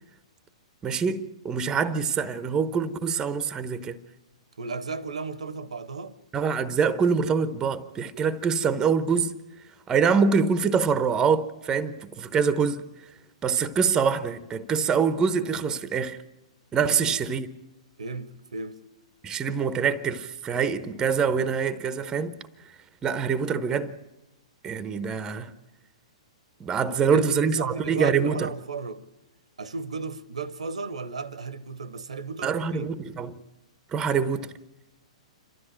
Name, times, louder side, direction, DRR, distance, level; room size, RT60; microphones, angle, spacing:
voice 1, 0.8-4.0 6.3-9.3 9.9-12.9 13.4-16.2 16.7-17.5 19.2-22.3 23.0-23.9 24.6-25.5 26.6-28.5 32.4-33.3 33.9-34.5, right 6 dB, 20° right, 1.0 m, -25 dB
voice 2, 4.6-6.1 16.8-17.2 18.0-18.8 26.9-29.1 29.6-32.9, right 4 dB, 75° right, 1.1 m, -35 dB
28.0 x 13.0 x 8.9 m
figure-of-eight pair, 115°, 4 cm